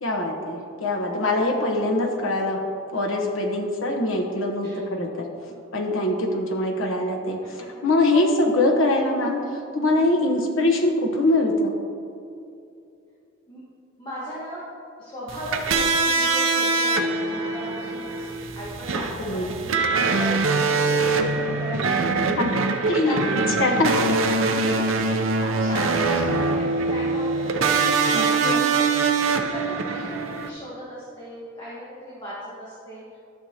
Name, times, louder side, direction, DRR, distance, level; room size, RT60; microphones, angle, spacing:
voice 1, 0.0-2.6 2.9-5.3 5.7-11.8 19.2-19.6 22.4-22.5 22.9-23.2 23.6-23.9 28.1-28.6, left 2 dB, 90° left, 1 dB, 1.1 m, -23 dB
voice 2, 14.0-14.7 15.0-18.3 18.5-22.7 23.0-27.8 28.1-33.2, equal, 20° left, -8 dB, 1.5 m, -37 dB
sound 1, 15.3-30.5, right 3 dB, 85° right, 0.6 m, -23 dB
12.0 x 6.5 x 2.9 m, 2.6 s
head